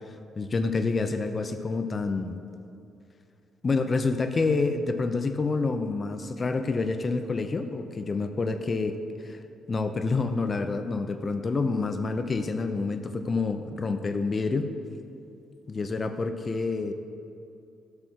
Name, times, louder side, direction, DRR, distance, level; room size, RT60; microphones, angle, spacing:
voice 1, 0.4-2.4 3.6-9.0 9.2-9.4 9.7-14.7 15.7-16.9, left 3 dB, 35° left, 8 dB, 0.5 m, -28 dB
7.8 x 3.5 x 6.1 m, 2.6 s
cardioid pair, 90°, 0 cm